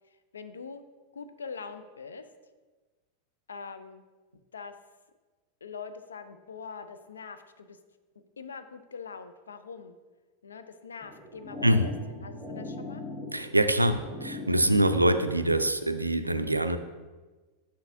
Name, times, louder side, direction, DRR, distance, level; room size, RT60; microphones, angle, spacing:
voice 1, 0.3-0.8 1.1-2.3 3.5-4.0 4.5-4.8 5.6-7.8 8.4-10.0 10.4-11.9 12.2-13.0, left 5 dB, 70° left, 10 dB, 0.4 m, -43 dB
sound 1, 11.0-16.0, left 3 dB, 5° left, 1.6 m, -41 dB
voice 2, 13.3-16.8, right 1 dB, 85° right, 9 dB, 0.3 m, -24 dB
6.4 x 5.9 x 2.6 m, 1.3 s
figure-of-eight pair, 90°, 0 cm